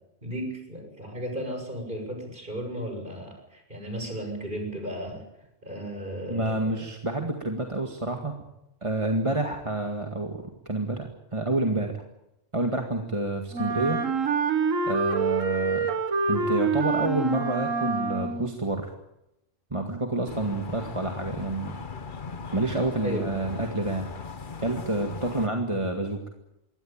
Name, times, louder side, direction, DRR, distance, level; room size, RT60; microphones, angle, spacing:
voice 1, 0.2-5.2 5.6-6.8 23.0-23.4, equal, 40° right, 3 dB, 7.1 m, -35 dB
voice 2, 6.3-8.4 8.8-12.0 12.5-14.0 14.9-15.9 16.3-18.9 19.7-21.7 22.5-24.1 24.6-26.2, right 2 dB, 25° right, 3 dB, 2.0 m, -28 dB
Wind instrument woodwind instrument, 13.5-18.6, right 4 dB, 90° right, 2.0 m, -26 dB
sound 1, 20.3-25.5, left 5 dB, 40° left, 1.4 m, -39 dB
23.0 x 17.5 x 8.9 m, 0.90 s
omnidirectional pair, 1.3 m